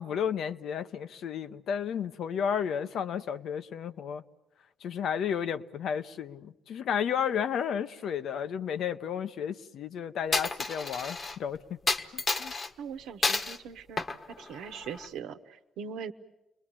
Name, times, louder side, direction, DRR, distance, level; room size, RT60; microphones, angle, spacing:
voice 1, 0.0-4.2 4.8-11.8 12.1-12.5, left 8 dB, 75° left, 0.9 m, -32 dB
Coin (dropping), 10.3-11.4 11.9-12.7 13.2-13.6 14.0-15.1, left 3 dB, 40° left, 1.2 m, -30 dB
voice 2, 12.8-14.0 14.4-16.1, right 7 dB, 90° right, 1.1 m, -41 dB
30.0 x 21.5 x 8.8 m
cardioid pair, 90°, 0 cm